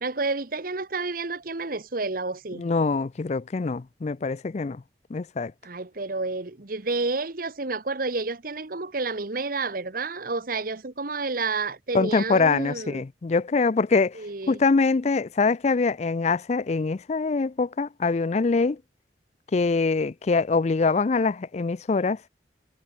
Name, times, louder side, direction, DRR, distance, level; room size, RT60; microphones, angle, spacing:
voice 1, 0.0-2.6 5.6-13.0 14.1-14.6, right 3 dB, 55° right, 1.3 m, -30 dB
voice 2, 2.6-4.8 5.1-5.5 11.9-14.2 14.5-18.8 19.5-22.2, left 4 dB, 40° left, 0.4 m, -24 dB
head